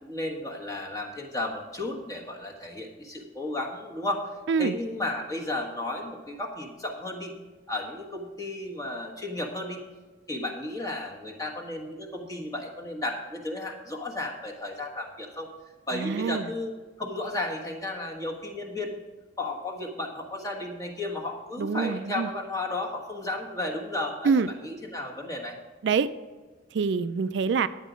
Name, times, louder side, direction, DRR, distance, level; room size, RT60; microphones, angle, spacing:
voice 1, 0.0-4.3 4.6-7.3 7.7-9.9 10.3-15.5 15.9-16.7 17.0-19.0 19.4-24.3 24.6-25.6, left 2 dB, 20° left, 0 dB, 1.3 m, -33 dB
voice 2, 15.9-16.4 21.6-22.3 24.2-24.5 25.8-26.1 26.7-27.7, right 5 dB, 60° right, 13 dB, 0.3 m, -25 dB
10.0 x 9.1 x 5.1 m, 1.4 s
head